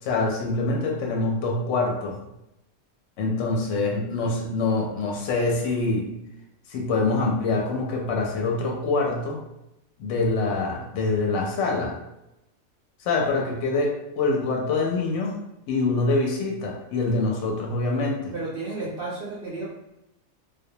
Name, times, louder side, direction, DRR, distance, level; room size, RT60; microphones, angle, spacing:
voice 1, 0.0-2.2 3.2-6.1 6.7-9.4 10.0-12.0 13.0-15.3 15.7-18.3, left 3 dB, 70° left, 0 dB, 0.9 m, -25 dB
voice 2, 18.3-19.7, right 2 dB, 60° right, -6 dB, 0.6 m, -32 dB
2.2 x 2.1 x 2.7 m, 0.86 s
omnidirectional pair, 1.4 m